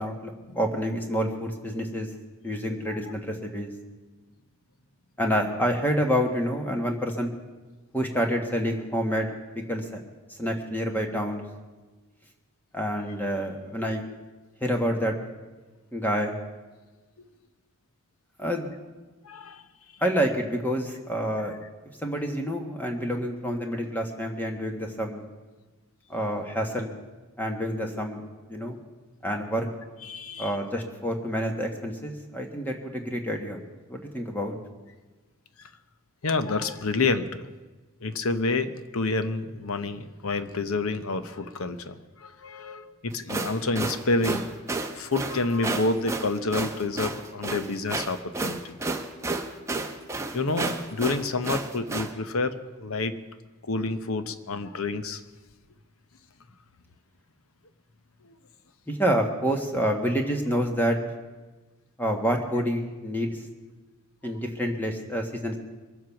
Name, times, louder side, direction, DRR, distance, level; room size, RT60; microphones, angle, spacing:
voice 1, 0.0-2.1 2.4-3.7 5.2-7.3 7.9-10.0 10.4-11.4 12.7-14.1 14.6-15.1 15.9-16.4 18.4-18.7 20.0-21.6 22.0-25.2 26.1-26.9 27.4-28.2 28.5-28.8 29.2-29.7 30.4-33.6 33.9-34.5 58.9-61.0 62.0-63.4 64.2-65.6, equal, 10° left, 3 dB, 1.4 m, -28 dB
voice 2, 19.2-19.6 30.0-30.6 35.6-35.7 36.2-37.5 38.0-44.5 44.9-48.8 50.3-53.2 53.7-55.2 58.2-58.4, left 3 dB, 75° left, 11 dB, 0.9 m, -29 dB
sound 1, 43.1-52.1, right 3 dB, 15° right, 0.9 m, -31 dB
23.0 x 7.8 x 5.9 m, 1.2 s
head